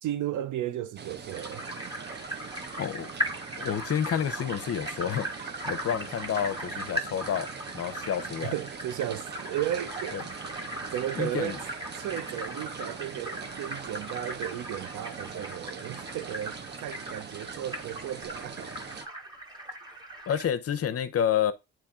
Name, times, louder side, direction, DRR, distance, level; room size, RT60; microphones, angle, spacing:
voice 1, 0.0-1.6 8.4-10.2 10.9-11.6 12.0-18.7, right 11 dB, 80° right, 0.7 m, -34 dB
sound 1, 1.0-19.1, right 6 dB, 35° right, 0.7 m, -42 dB
sound 2, 1.3-20.5, equal, 15° right, 1.5 m, -38 dB
voice 2, 2.8-3.1 3.6-5.3 5.6-7.5 7.7-8.5 10.1-10.2 11.2-11.6 20.3-21.5, left 9 dB, 50° left, 0.7 m, -29 dB
8.3 x 3.1 x 3.6 m
cardioid pair, 90°, 30 cm